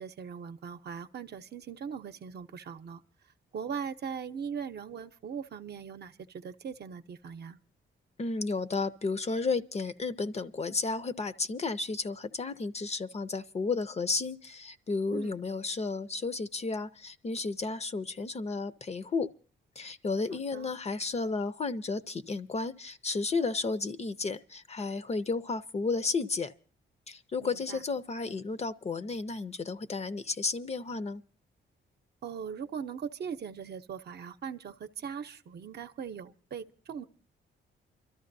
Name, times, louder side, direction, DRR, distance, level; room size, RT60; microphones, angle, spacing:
voice 1, 0.0-3.0 3.5-7.6 15.1-15.4 20.3-20.7 27.4-27.8 32.2-37.1, right 7 dB, 55° right, 0.7 m, -40 dB
voice 2, 8.2-19.3 19.8-26.5 27.1-31.2, left 4 dB, 30° left, 0.6 m, -33 dB
29.0 x 13.0 x 2.6 m
cardioid pair, 125°, 20 cm